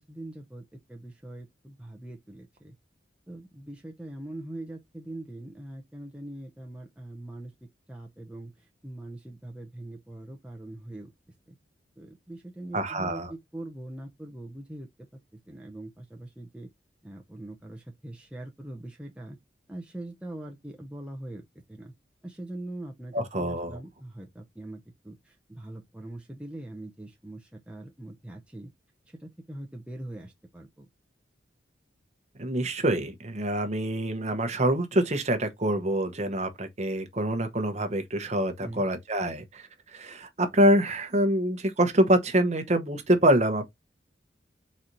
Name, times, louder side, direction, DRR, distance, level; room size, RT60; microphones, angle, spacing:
voice 1, 0.1-2.7 3.3-7.5 7.9-11.1 11.5-11.6 12.0-14.9 15.5-16.7 17.0-19.4 19.7-21.4 21.7-21.9 22.2-28.7 29.1-30.9 38.6-38.8, right 1 dB, 5° right, 0.7 m, -42 dB
voice 2, 12.7-13.3 23.1-23.8 32.4-43.7, right 1 dB, 35° right, 0.9 m, -25 dB
4.1 x 3.9 x 3.0 m
head